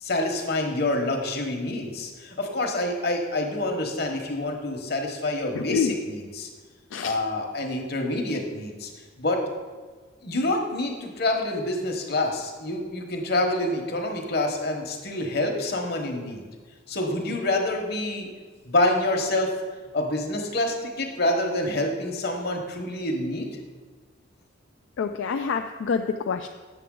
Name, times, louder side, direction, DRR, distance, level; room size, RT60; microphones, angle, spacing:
voice 1, 0.0-6.5 7.0-8.9 9.2-9.4 10.2-16.4 16.9-18.3 18.6-19.5 19.9-23.5, left 2 dB, 55° left, 3 dB, 1.1 m, -27 dB
voice 2, 5.5-5.9 6.9-7.2 25.0-26.5, left 5 dB, 75° left, 5 dB, 0.3 m, -27 dB
8.2 x 6.7 x 3.8 m, 1.4 s
head